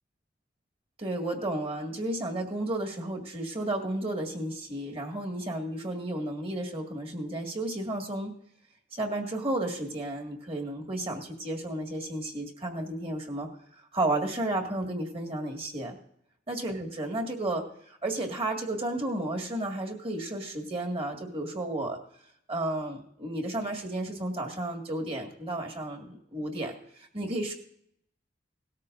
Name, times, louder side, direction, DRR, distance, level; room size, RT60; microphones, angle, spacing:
voice 1, 1.0-8.3 8.9-16.0 16.5-22.0 22.5-27.5, right 1 dB, 30° right, 1 dB, 1.9 m, -33 dB
18.0 x 13.0 x 2.6 m, 0.69 s
head